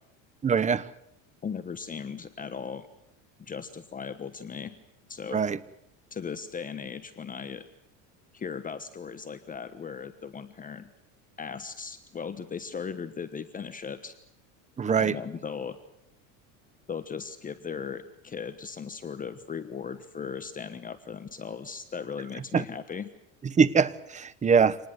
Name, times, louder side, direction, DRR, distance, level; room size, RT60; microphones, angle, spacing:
voice 1, 0.4-0.9 5.3-5.6 14.8-15.2 22.5-22.6 23.4-24.8, right 6 dB, 20° right, 17 dB, 1.0 m, -23 dB
voice 2, 1.4-2.9 3.4-4.7 5.1-5.4 6.1-7.6 8.3-10.9 11.4-14.1 15.0-15.8 16.9-23.1, left 6 dB, 20° left, 11 dB, 1.2 m, -37 dB
26.0 x 19.5 x 7.9 m, 0.79 s
supercardioid pair, 125°, 38 cm